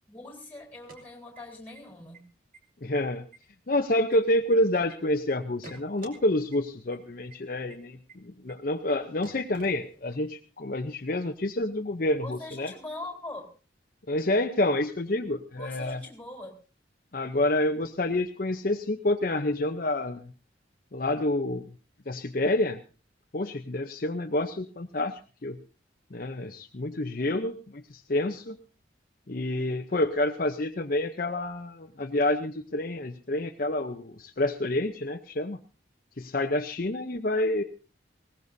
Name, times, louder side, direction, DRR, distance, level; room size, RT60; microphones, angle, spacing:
voice 1, 0.1-2.3 12.2-13.5 15.6-16.5 27.2-27.5, left 2 dB, 10° left, 3 dB, 4.0 m, -42 dB
sound 1, 0.7-1.8 2.1-2.2 2.5-3.0 3.3-4.9 5.3-6.2 6.5-6.6 6.9-7.0 7.3-7.4 7.7-7.8 8.1-8.2 8.5-8.6 8.9-9.0 9.2-10.3, right 2 dB, 45° right, 2.8 m, -49 dB
voice 2, 2.8-3.2 3.7-12.7 14.1-16.0 17.1-20.3 20.9-21.6 22.1-22.8 23.3-25.6 26.1-27.5 27.9-28.6 29.3-35.6 36.2-37.6, left 1 dB, 45° left, 6 dB, 0.7 m, -28 dB
20.0 x 18.5 x 2.7 m, 0.35 s
head